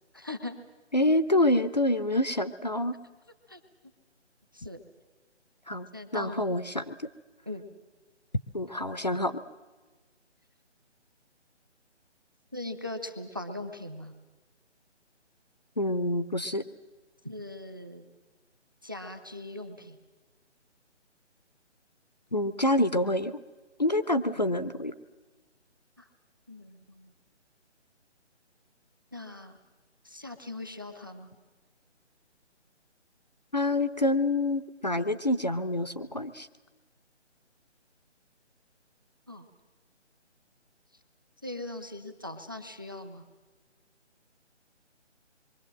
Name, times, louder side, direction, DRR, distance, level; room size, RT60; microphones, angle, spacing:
voice 1, 0.1-0.6 3.5-3.6 4.5-4.8 5.9-6.4 7.5-7.7 12.5-14.1 17.2-18.1 18.8-20.0 26.0-26.1 26.5-27.1 29.1-29.5 30.0-31.3 39.3-39.5 41.4-43.2, left 2 dB, 20° right, 9 dB, 0.8 m, -40 dB
voice 2, 0.9-2.9 5.7-5.9 6.1-6.9 8.5-9.4 15.8-16.6 22.3-23.4 23.8-24.9 33.5-36.5, left 1 dB, 35° left, 12 dB, 0.7 m, -27 dB
26.0 x 23.5 x 7.6 m, 1.3 s
hypercardioid pair, 180°, 36 cm